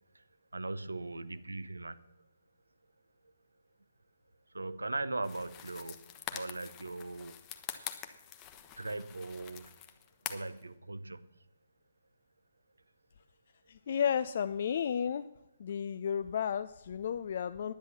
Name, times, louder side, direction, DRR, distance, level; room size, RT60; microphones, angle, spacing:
voice 1, 0.5-2.2 4.5-7.5 8.8-9.7 10.3-11.4, right 2 dB, 75° right, 14 dB, 0.7 m, -39 dB
sound 1, 5.2-10.6, left 10 dB, 25° left, 1.1 m, -45 dB
voice 2, 13.7-15.3 15.6-17.7, left 8 dB, 45° left, 11 dB, 0.4 m, -33 dB
10.5 x 9.3 x 7.3 m, 0.89 s
figure-of-eight pair, 135°, 0 cm